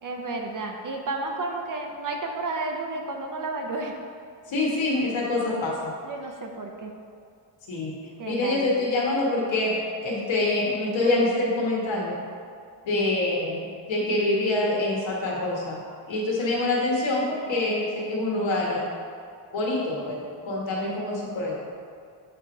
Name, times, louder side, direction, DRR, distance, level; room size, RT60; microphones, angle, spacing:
voice 1, 0.0-4.0 6.0-6.9 8.2-8.9, right 2 dB, 45° right, 2 dB, 0.7 m, -32 dB
voice 2, 4.5-5.9 7.7-7.9 8.2-12.2 12.8-15.8 16.1-18.9 19.5-21.6, left 2 dB, 80° left, -4 dB, 1.6 m, -26 dB
7.6 x 3.0 x 5.3 m, 2.3 s
wide cardioid pair, 135°, 45 cm